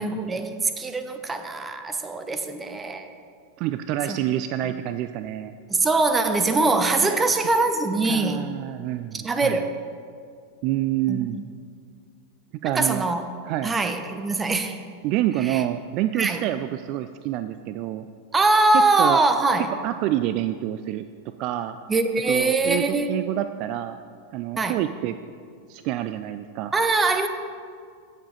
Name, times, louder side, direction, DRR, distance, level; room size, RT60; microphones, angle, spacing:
voice 1, 0.0-3.1 4.1-4.2 5.7-8.4 9.2-9.7 11.1-11.4 12.6-13.3 13.6-14.8 15.4-15.6 16.1-16.4 18.3-19.7 21.9-23.1 24.6-24.8 26.7-27.3, right 3 dB, 15° right, 8 dB, 0.9 m, -22 dB
voice 2, 3.6-5.5 6.9-7.3 8.0-9.6 10.6-11.4 12.6-13.0 13.4-13.7 15.0-18.1 19.0-19.2 19.6-21.0 21.4-21.8 22.3-24.0 24.3-25.2 25.7-26.7, right 13 dB, 45° right, 10 dB, 0.3 m, -27 dB
15.5 x 7.2 x 4.0 m, 2.2 s
figure-of-eight pair, 90°, 0 cm